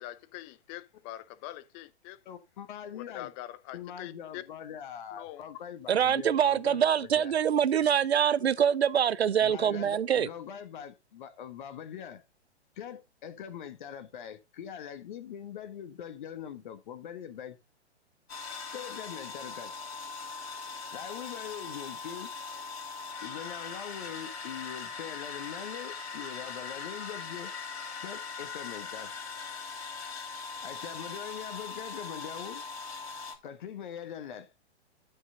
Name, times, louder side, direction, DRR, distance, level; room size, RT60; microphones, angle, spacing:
voice 1, 0.0-2.2 2.9-4.4 5.1-5.4, left 15 dB, 20° left, 0.7 m, -44 dB
voice 2, 2.2-3.3 3.7-7.4 9.4-12.2 12.7-17.6 18.7-19.7 20.9-22.3 23.2-27.5 28.0-29.1 30.6-32.6 33.4-34.5, left 9 dB, 45° left, 1.4 m, -42 dB
voice 3, 5.9-10.3, right 8 dB, 65° right, 0.8 m, -25 dB
sound 1, 18.3-33.4, left 4 dB, 65° left, 3.9 m, -40 dB
12.5 x 5.8 x 3.8 m
figure-of-eight pair, 120°, 34 cm